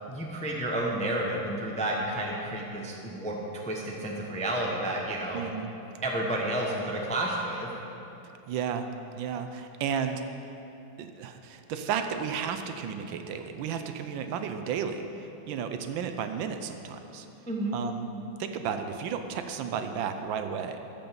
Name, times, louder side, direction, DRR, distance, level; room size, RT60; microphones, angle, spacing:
voice 1, 0.1-3.4 3.6-5.4 6.0-7.7 17.5-17.8, right 1 dB, 5° left, -2 dB, 0.5 m, -31 dB
voice 2, 5.3-5.7 8.5-8.9 9.1-10.2 11.0-17.3 17.7-18.1 18.4-20.8, right 7 dB, 75° right, 7 dB, 1.3 m, -33 dB
13.5 x 5.3 x 6.9 m, 2.9 s
omnidirectional pair, 2.2 m